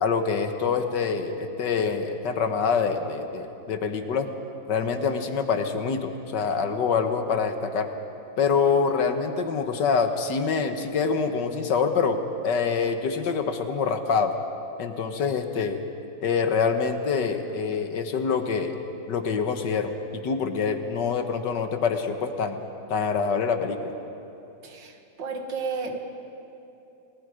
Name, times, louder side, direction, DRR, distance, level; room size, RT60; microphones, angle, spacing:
voice 1, 0.0-4.3 4.7-7.9 8.4-14.3 14.8-15.8 16.2-18.8 19.1-22.6 22.9-23.9, left 5 dB, 70° left, 7 dB, 1.8 m, -25 dB
voice 2, 24.6-26.0, right 4 dB, 75° right, 4 dB, 2.3 m, -33 dB
29.5 x 19.5 x 5.0 m, 2.8 s
omnidirectional pair, 2.0 m